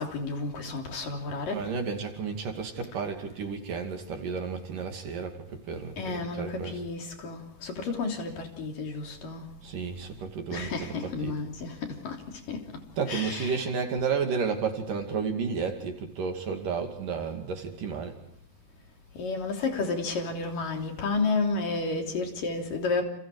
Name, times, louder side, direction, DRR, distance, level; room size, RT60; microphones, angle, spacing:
voice 1, 0.0-1.6 6.0-9.5 10.5-12.2 12.5-12.6 13.1-13.7 19.1-23.0, left 3 dB, 60° left, 4.9 m, -31 dB
voice 2, 1.5-5.4 5.7-6.8 9.6-11.4 13.0-18.2, right 5 dB, 60° right, 4.0 m, -32 dB
29.5 x 29.5 x 4.9 m
omnidirectional pair, 4.5 m